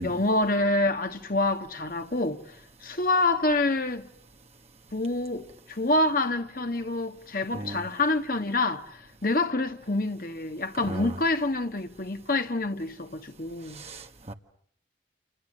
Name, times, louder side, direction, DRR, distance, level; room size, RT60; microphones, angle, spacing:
voice 1, 0.0-2.6 2.8-4.1 4.9-13.8, left 2 dB, 50° left, 1.3 m, -27 dB
voice 2, 7.5-7.9 10.9-11.1 13.7-14.3, right 1 dB, 35° right, 1.5 m, -36 dB
28.5 x 28.5 x 6.4 m
head